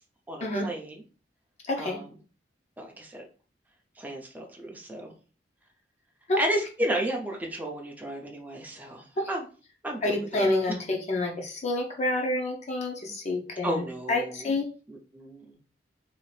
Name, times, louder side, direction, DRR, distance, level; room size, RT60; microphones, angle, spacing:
voice 1, 0.3-1.0 1.8-2.1 2.8-3.3 4.0-5.1 6.4-9.4 9.8-10.5 13.6-14.5 14.9-15.6, right 1 dB, 10° right, 0 dB, 0.5 m, -33 dB
voice 2, 1.6-2.0 6.3-6.4 9.2-9.3 10.0-13.8 14.1-14.7, left 2 dB, 40° left, 1 dB, 0.6 m, -28 dB
2.8 x 2.4 x 3.1 m, 0.37 s
head